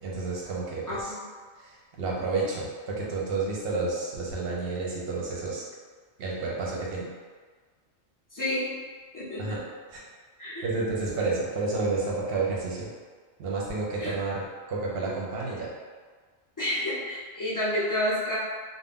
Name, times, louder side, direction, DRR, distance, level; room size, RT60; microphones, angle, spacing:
voice 1, 0.0-1.1 1.6-1.7 2.0-5.6 6.2-7.1 9.4-9.6 9.9-10.0 10.6-12.9 13.4-15.7, right 3 dB, 60° right, -4 dB, 0.8 m, -30 dB
voice 2, 0.9-1.2 8.3-8.7 9.1-9.6 10.4-10.7 14.0-14.2 16.6-18.4, left 1 dB, 25° left, -9 dB, 0.5 m, -29 dB
2.4 x 2.1 x 3.5 m, 1.5 s
omnidirectional pair, 1.3 m